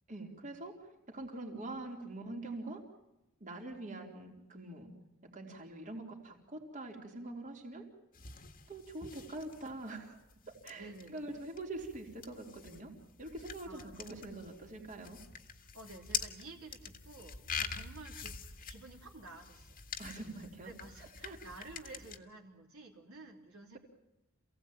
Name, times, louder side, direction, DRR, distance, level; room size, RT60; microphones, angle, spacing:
voice 1, 0.1-2.8 3.4-4.9 5.2-7.8 8.7-10.2 10.5-12.9 13.2-15.2 20.0-20.7 21.2-21.4 21.8-21.9, right 2 dB, 35° right, 1 dB, 3.9 m, -44 dB
sound 1, 8.1-22.2, left 6 dB, 40° left, 1.8 m, -45 dB
voice 2, 10.7-11.4 13.6-14.0 15.7-19.8 20.6-23.8, right 2 dB, 65° right, 0 dB, 3.4 m, -52 dB
27.5 x 17.5 x 9.0 m, 0.92 s
head